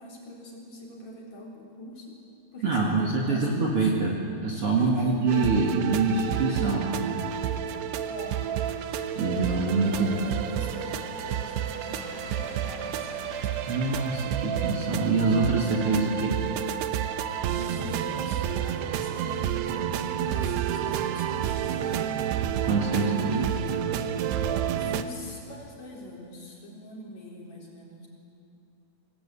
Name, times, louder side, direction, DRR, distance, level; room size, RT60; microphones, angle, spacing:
voice 1, 0.0-2.1 2.5-3.9 4.8-5.1 8.1-8.4 10.0-13.2 17.5-22.2 22.9-23.7 24.7-28.1, left 1 dB, 45° left, -2 dB, 5.0 m, -43 dB
voice 2, 2.6-7.3 9.2-10.2 10.7-10.8 13.7-16.4 22.6-23.4, right 3 dB, 45° right, -1 dB, 2.4 m, -25 dB
sound 1, 5.3-25.0, right 9 dB, 90° right, 3.0 m, -30 dB
sound 2, 7.5-15.9 16.2-16.3, right 1 dB, 65° right, 7.7 m, -48 dB
25.5 x 19.0 x 8.4 m, 2.6 s
omnidirectional pair, 4.6 m